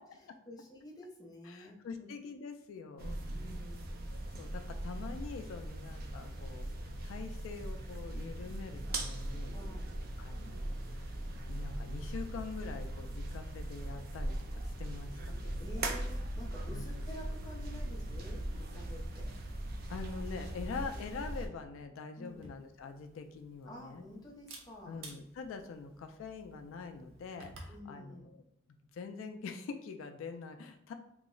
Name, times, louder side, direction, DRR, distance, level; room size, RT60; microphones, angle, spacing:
voice 1, 0.0-2.1 3.3-4.1 9.5-9.9 15.6-19.3 20.8-21.0 22.2-22.5 23.7-25.0 27.7-28.3, left 1 dB, 20° left, -2 dB, 0.6 m, -50 dB
voice 2, 1.4-3.2 4.1-6.7 7.0-9.6 10.2-11.1 11.5-15.7 16.7-16.8 19.9-24.0 24.9-28.4 28.9-30.9, left 4 dB, 80° left, 6 dB, 0.3 m, -44 dB
sound 1, 3.0-21.5, right 1 dB, 50° right, 0.4 m, -40 dB
sound 2, 14.9-20.7, left 1 dB, 20° right, 1.0 m, -63 dB
Camera, 22.3-27.8, right 2 dB, 85° right, 0.6 m, -55 dB
3.0 x 2.0 x 3.7 m, 0.81 s
head